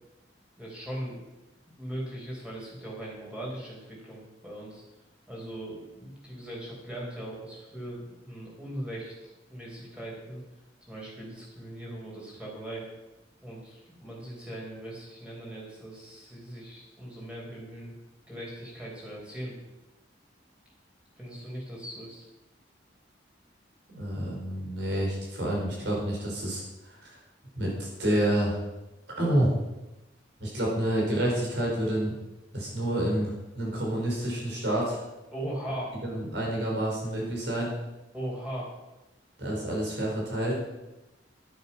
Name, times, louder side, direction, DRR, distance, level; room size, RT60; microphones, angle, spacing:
voice 1, 0.6-1.2 1.8-4.8 5.3-10.4 10.9-12.9 13.4-17.9 18.3-19.6 21.2-22.2 35.3-36.0 38.1-38.7, right 1 dB, 5° right, -4 dB, 4.5 m, -39 dB
voice 2, 23.9-27.2 27.6-28.6 29.2-29.5 30.4-32.2 32.5-35.0 36.0-37.7 39.4-40.6, right 1 dB, 65° right, -2 dB, 5.1 m, -28 dB
11.0 x 9.6 x 5.8 m, 1.0 s
head